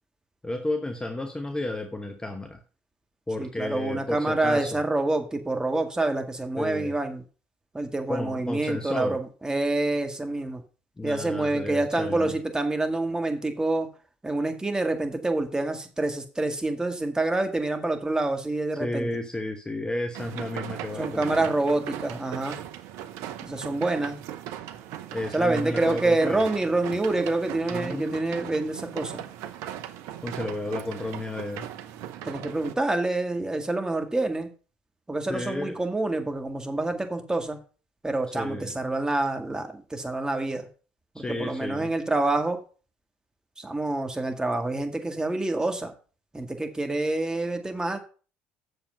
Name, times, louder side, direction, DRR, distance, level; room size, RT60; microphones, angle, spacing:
voice 1, 0.4-2.6 3.3-4.8 6.6-7.0 8.1-9.2 11.0-12.3 18.8-21.5 25.1-26.4 27.7-28.6 30.2-31.7 35.3-35.8 38.3-38.7 41.1-41.9, left 1 dB, 15° left, 6 dB, 1.1 m, -32 dB
voice 2, 3.4-7.2 7.7-10.6 11.0-13.9 14.2-19.1 21.0-22.6 23.4-24.2 25.3-29.2 32.2-34.5 35.1-37.6 38.0-40.7 41.2-42.6 43.6-45.9 46.3-48.0, right 2 dB, 10° right, 5 dB, 2.0 m, -27 dB
sound 1, 20.1-32.8, right 11 dB, 60° right, 0.7 m, -38 dB
8.1 x 7.0 x 5.5 m, 0.37 s
figure-of-eight pair, 60°, 5 cm